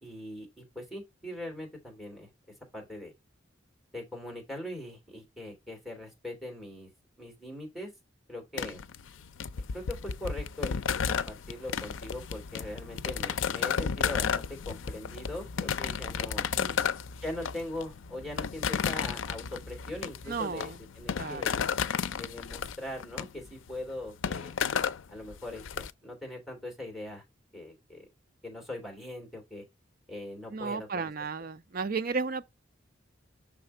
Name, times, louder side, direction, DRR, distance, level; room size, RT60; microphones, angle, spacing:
voice 1, 0.0-2.3 2.7-3.1 3.9-6.9 7.2-7.9 8.3-8.8 9.7-16.5 17.2-21.6 22.2-24.5 25.1-27.2 27.5-28.0 28.4-29.6 30.1-31.1, left 1 dB, ahead, 2.9 m, -41 dB
sound 1, 8.6-25.9, left 7 dB, 80° left, 0.4 m, -33 dB
voice 2, 20.3-20.8 21.1-21.5 30.5-32.4, right 4 dB, 50° right, 0.6 m, -34 dB
5.9 x 3.7 x 5.4 m
head